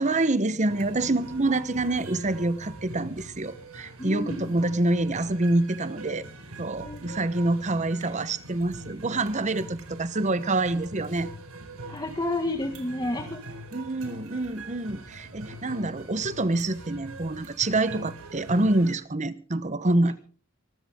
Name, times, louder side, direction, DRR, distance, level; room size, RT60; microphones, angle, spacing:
voice 1, 0.0-6.3 6.6-11.3 13.7-20.2, right 2 dB, 35° right, 0.9 m, -26 dB
sound 1, 0.7-18.9, right 1 dB, 80° right, 4.4 m, -43 dB
voice 2, 4.0-4.4 6.8-7.2 11.9-13.4, left 1 dB, 20° left, 1.7 m, -30 dB
24.5 x 13.0 x 3.6 m
head